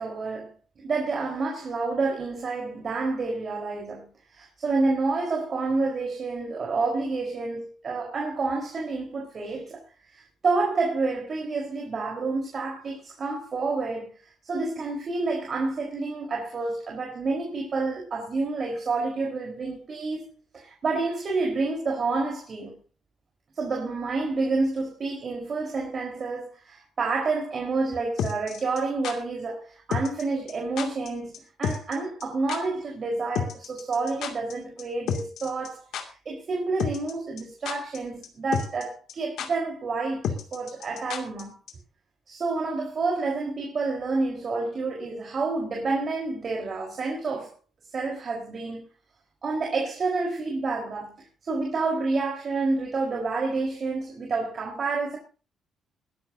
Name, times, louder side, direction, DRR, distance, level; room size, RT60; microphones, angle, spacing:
voice 1, 0.0-4.1 4.3-9.8 10.1-14.1 14.4-20.2 20.5-22.7 23.5-41.6 42.3-47.5 47.9-48.8 49.4-55.2, right 3 dB, 45° right, 4.4 m, -29 dB
sound 1, 28.2-29.1 29.9-30.2 30.5-30.6 30.8-31.1 31.3-31.4 31.6-32.2 32.5-32.6 33.3-34.5 34.8-34.9 35.1-35.7 35.9-36.0 36.8-37.1 37.4-38.0 38.2-38.3 38.5-38.8 39.1-39.2 39.4-39.5 40.2-41.4 41.7-41.8, left 7 dB, 80° left, 2.5 m, -30 dB
21.5 x 12.5 x 2.8 m
cardioid pair, 90°, 0 cm